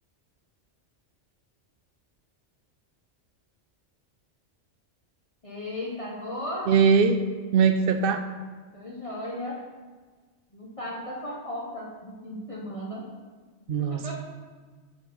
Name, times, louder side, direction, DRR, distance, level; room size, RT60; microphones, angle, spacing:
voice 1, 5.4-6.7 8.7-9.6 10.5-13.1 13.9-14.2, left 1 dB, 30° left, -4 dB, 0.8 m, -35 dB
voice 2, 6.7-7.2 7.5-8.2 13.7-14.2, right 6 dB, 60° right, 8 dB, 0.7 m, -21 dB
6.0 x 4.0 x 6.0 m, 1.4 s
omnidirectional pair, 1.2 m